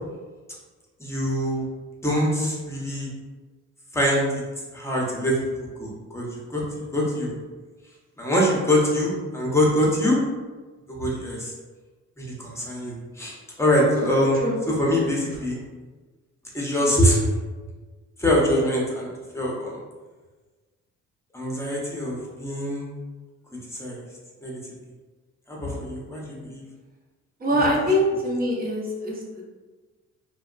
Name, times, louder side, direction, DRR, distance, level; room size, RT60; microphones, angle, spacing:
voice 1, 1.0-1.7 2.0-3.1 3.9-4.3 4.7-5.3 5.8-6.6 6.9-7.3 8.2-10.2 10.9-11.5 12.2-15.6 16.5-17.2 18.2-19.8 21.3-22.9 23.7-24.0 24.4-24.5 25.5-26.6 27.5-27.7, equal, 10° left, -4 dB, 0.7 m, -24 dB
voice 2, 27.4-29.4, equal, 30° right, -2 dB, 0.7 m, -24 dB
2.7 x 2.2 x 2.5 m, 1.3 s
cardioid pair, 90°, 30 cm